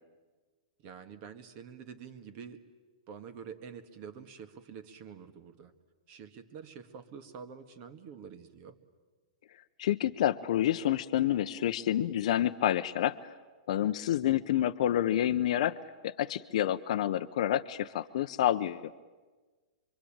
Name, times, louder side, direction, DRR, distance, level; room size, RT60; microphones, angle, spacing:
voice 1, 0.8-2.6 3.1-5.7 6.1-8.8, right 7 dB, 40° right, 9 dB, 2.0 m, -47 dB
voice 2, 9.8-13.3 13.7-15.8 16.0-18.9, left 11 dB, 65° left, 8 dB, 0.8 m, -28 dB
25.5 x 24.0 x 8.9 m, 1.3 s
hypercardioid pair, 145°, 4 cm